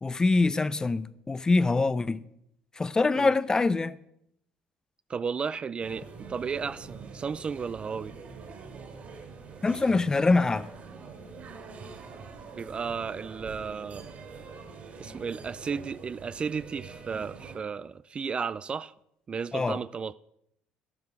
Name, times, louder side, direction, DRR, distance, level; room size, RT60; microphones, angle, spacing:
voice 1, 0.0-2.2 2.8-4.0 9.6-10.7 19.5-19.8, left 3 dB, 20° left, 0.6 m, -24 dB
voice 2, 5.1-8.2 12.5-14.1 15.0-18.9 19.3-20.1, right 6 dB, 35° right, 0.4 m, -34 dB
sound 1, 5.8-17.6, right 4 dB, 50° right, 3.3 m, -45 dB
12.0 x 12.0 x 4.7 m
supercardioid pair, 85°, 3 cm